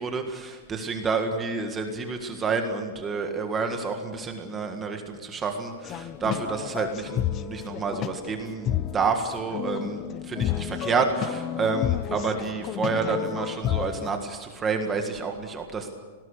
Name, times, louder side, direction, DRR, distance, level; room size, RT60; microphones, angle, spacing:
voice 1, 0.0-15.9, right 4 dB, 15° right, 4 dB, 1.7 m, -29 dB
sound 1, 5.8-14.1, left 11 dB, 20° left, 0.6 m, -31 dB
27.5 x 19.0 x 6.6 m, 1.5 s
supercardioid pair, 175°, 0 cm